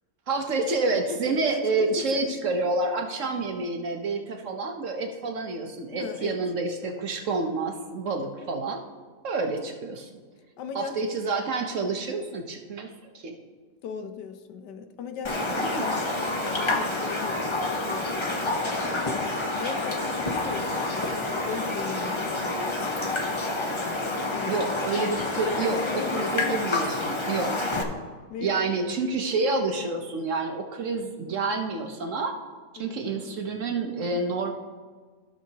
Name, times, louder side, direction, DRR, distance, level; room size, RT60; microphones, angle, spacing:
voice 1, 0.3-8.8 9.2-10.1 10.7-12.9 13.1-13.4 15.4-15.9 24.5-27.6 28.4-32.3 32.7-34.5, right 3 dB, 60° right, 3 dB, 0.9 m, -28 dB
voice 2, 0.9-2.4 5.9-6.4 6.8-7.1 10.6-11.1 13.8-23.2 24.2-24.7 25.7-26.7 28.3-28.7 32.8-33.3, left 6 dB, 80° left, 8 dB, 1.3 m, -38 dB
Raindrop, 15.2-27.8, left 2 dB, 40° left, 0.4 m, -28 dB
15.5 x 6.3 x 2.8 m, 1.5 s
omnidirectional pair, 1.8 m